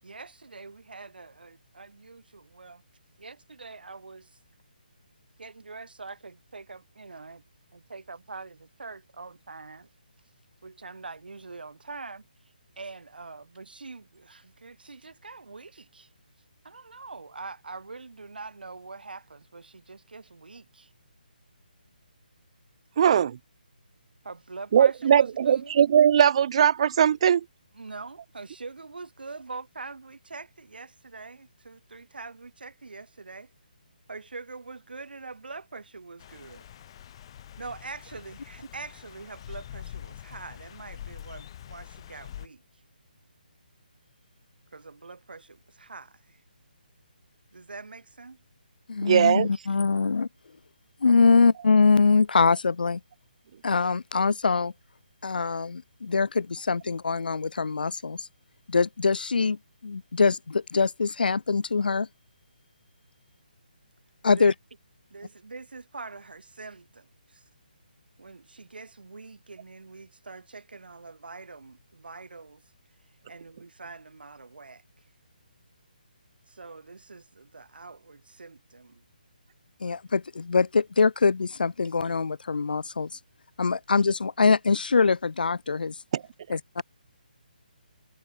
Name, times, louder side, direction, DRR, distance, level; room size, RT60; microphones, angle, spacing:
voice 1, 0.0-2.8 3.2-4.4 5.4-7.4 7.7-9.9 10.6-12.3 12.8-16.1 16.6-20.9 23.0-23.1 24.2-25.7 27.7-33.5 34.1-36.7 37.6-42.6 44.7-46.4 47.5-48.4 49.5-49.8 51.1-51.2 64.4-64.5 65.1-67.4 68.2-72.6 73.3-75.1 76.5-79.0, right 3 dB, 80° right, 2.0 m, -44 dB
voice 2, 23.0-23.4 24.7-27.4 49.0-49.5 86.1-86.2, right 8 dB, 40° right, 0.4 m, -20 dB
sound 1, 36.2-42.5, left 11 dB, 35° left, 0.8 m, -44 dB
voice 3, 48.9-50.3 51.0-53.0 53.6-54.7 55.2-58.3 58.7-62.1 64.2-64.5 79.8-83.2 83.6-86.0 86.5-86.8, left 4 dB, 70° left, 1.3 m, -23 dB
hypercardioid pair, 155°, 5 cm